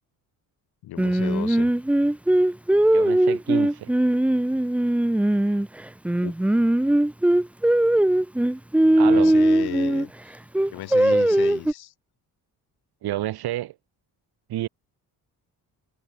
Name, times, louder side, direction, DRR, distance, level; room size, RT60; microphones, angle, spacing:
voice 1, 0.8-1.7 6.1-6.3 9.0-10.3 10.7-11.9, left 15 dB, 85° left, 1.4 m, -35 dB
Singing, 1.0-5.7 6.0-10.1 10.5-11.7, right 1 dB, 5° right, 0.6 m, -20 dB
voice 2, 2.9-3.9 9.0-9.3 11.1-11.2 13.0-13.7 14.5-14.7, right 14 dB, 85° right, 1.8 m, -29 dB
cardioid pair, 165°, 37 cm